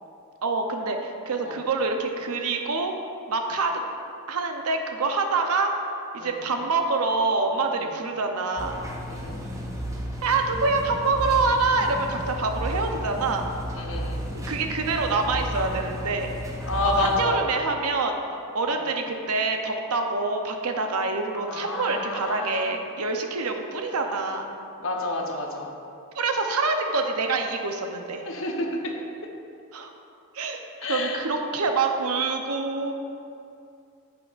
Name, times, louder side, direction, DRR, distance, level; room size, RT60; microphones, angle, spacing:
voice 1, 0.4-2.9 3.3-3.8 4.3-5.7 6.1-8.7 10.2-13.4 14.3-16.3 17.0-24.5 26.2-28.2 29.7-29.9 30.3-32.9, right 3 dB, 85° right, 4 dB, 0.7 m, -26 dB
sound 1, 8.6-17.3, equal, 15° right, 0.5 m, -33 dB
voice 2, 9.1-9.4 13.7-14.3 16.6-17.4 18.7-18.9 21.5-22.7 24.8-25.7 28.2-28.9 30.8-31.2, left 2 dB, 65° left, 1 dB, 0.9 m, -29 dB
9.0 x 7.7 x 2.5 m, 2.6 s
head